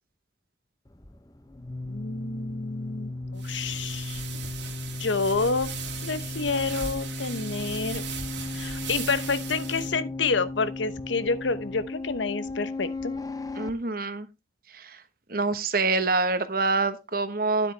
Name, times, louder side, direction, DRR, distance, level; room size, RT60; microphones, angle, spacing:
sound 1, 0.9-13.7, left 2 dB, 20° left, 0.7 m, -36 dB
voice 1, 1.9-4.2 5.0-5.7 6.0-8.0 8.5-13.1, left 4 dB, 85° left, 0.9 m, -29 dB
sound 2, 3.4-9.9, right 6 dB, 80° right, 2.5 m, -38 dB
voice 2, 13.6-14.3 14.7-15.0 15.3-17.7, right 3 dB, 50° right, 1.1 m, -26 dB
10.0 x 8.0 x 3.3 m
head